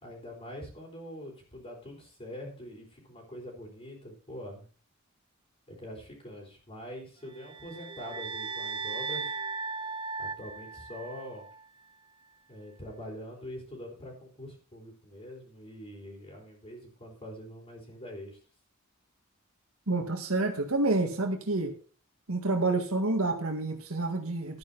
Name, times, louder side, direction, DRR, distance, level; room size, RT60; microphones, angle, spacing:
voice 1, 0.0-4.7 5.7-9.3 10.2-11.5 12.5-18.4, equal, 30° left, -2 dB, 3.9 m, -44 dB
sound 1, 7.4-11.6, right 4 dB, 25° right, 0.6 m, -37 dB
voice 2, 19.9-21.7 22.3-24.6, right 2 dB, 90° right, 4 dB, 1.8 m, -28 dB
12.0 x 9.1 x 4.1 m, 0.40 s
head